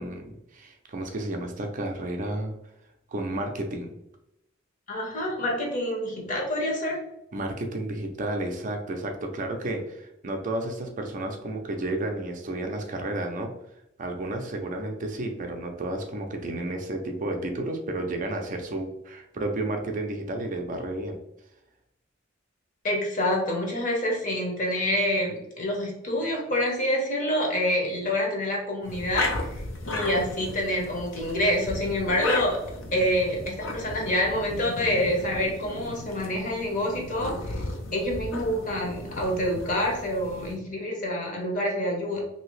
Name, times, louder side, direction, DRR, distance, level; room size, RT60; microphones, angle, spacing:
voice 1, 0.0-2.5 3.1-3.9 7.3-13.5 14.0-21.2, right 1 dB, 40° right, 3 dB, 0.4 m, -32 dB
voice 2, 4.9-7.0 22.8-32.6 32.9-37.6 37.9-42.2, left 1 dB, 40° left, -1 dB, 0.9 m, -27 dB
sound 1, 28.8-40.6, left 2 dB, 75° left, 0.6 m, -35 dB
2.8 x 2.7 x 3.1 m, 0.84 s
head